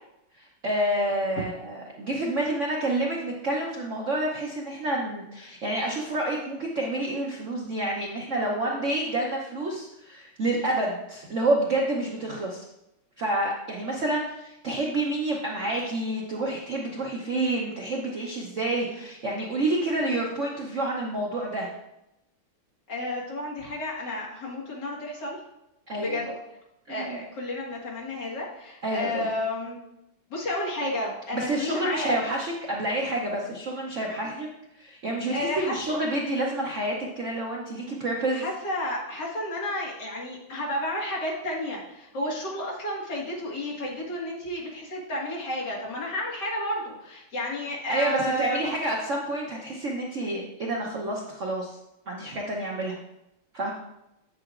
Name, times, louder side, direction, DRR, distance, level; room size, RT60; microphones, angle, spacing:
voice 1, 0.3-12.6 13.2-21.7 25.9-26.2 26.9-27.3 28.8-29.3 31.3-34.5 34.8-38.4 47.9-51.8 52.1-53.0 53.5-53.7, right 1 dB, 55° right, -2 dB, 0.8 m, -28 dB
voice 2, 22.9-25.4 26.0-26.3 26.9-29.8 30.3-32.1 35.3-36.0 38.3-48.6, left 1 dB, 55° left, -5 dB, 2.4 m, -31 dB
7.8 x 7.6 x 2.5 m, 0.88 s
omnidirectional pair, 2.3 m